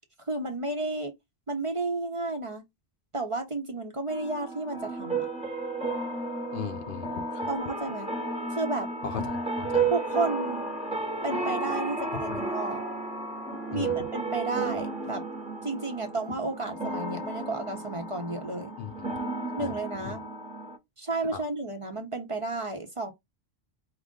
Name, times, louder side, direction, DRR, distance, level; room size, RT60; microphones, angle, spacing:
voice 1, 0.3-1.1 1.5-2.6 3.1-5.3 7.5-8.1 8.5-8.9 9.9-10.7 11.2-12.8 13.7-15.2 15.6-18.7 19.6-20.2 21.0-23.1, right 2 dB, 35° right, 0.8 m, -32 dB
sound 1, 4.1-20.8, right 3 dB, 5° right, 1.0 m, -33 dB
voice 2, 6.5-7.5 9.0-9.9 12.3-12.4 13.7-14.1 18.8-19.1 19.6-19.8 20.0-20.2 21.3-21.4, left 6 dB, 60° left, 0.7 m, -37 dB
4.8 x 2.5 x 3.7 m
omnidirectional pair, 1.1 m